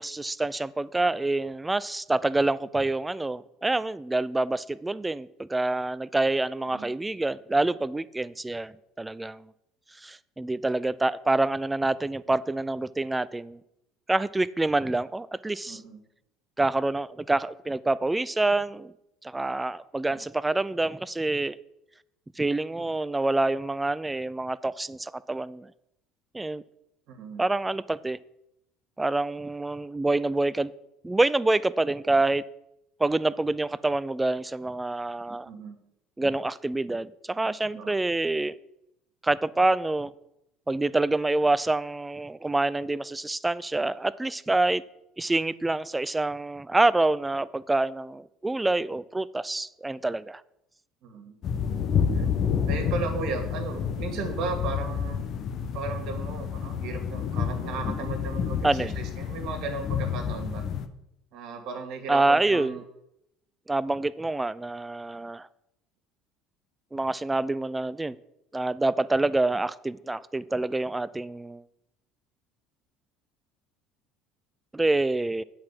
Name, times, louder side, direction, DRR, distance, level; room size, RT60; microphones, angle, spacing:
voice 1, 0.0-9.5 10.0-13.6 14.1-15.8 16.6-18.9 19.2-21.6 22.4-25.7 26.3-26.6 27.4-28.2 29.0-30.7 31.0-32.4 33.0-35.5 36.2-38.6 39.2-40.1 40.7-44.8 45.2-50.4 58.6-58.9 62.1-62.8 63.7-65.5 66.9-68.2 68.5-71.6 74.7-75.4, right 2 dB, 10° right, 17 dB, 0.4 m, -27 dB
voice 2, 15.7-16.0 20.1-20.2 27.1-27.4 35.4-35.8 37.4-37.9 51.0-51.4 52.0-52.4 52.6-55.2 55.7-60.7 61.3-62.8, right 4 dB, 65° right, 4 dB, 2.1 m, -36 dB
sound 1, 51.4-60.9, left 7 dB, 55° left, 0.8 m, -29 dB
8.4 x 4.7 x 7.5 m, 0.83 s
supercardioid pair, 90°, 0 cm